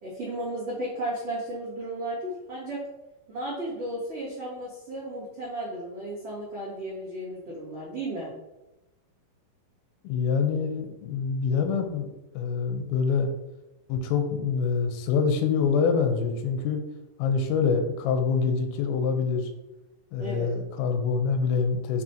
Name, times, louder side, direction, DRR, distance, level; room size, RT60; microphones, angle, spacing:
voice 1, 0.0-2.8 3.3-8.3 20.2-20.5, right 1 dB, 85° right, -7 dB, 1.3 m, -34 dB
voice 2, 10.1-13.3 13.9-16.8 17.2-19.5 20.1-22.0, left 5 dB, 85° left, 5 dB, 3.4 m, -25 dB
7.3 x 6.2 x 2.9 m, 0.99 s
omnidirectional pair, 5.9 m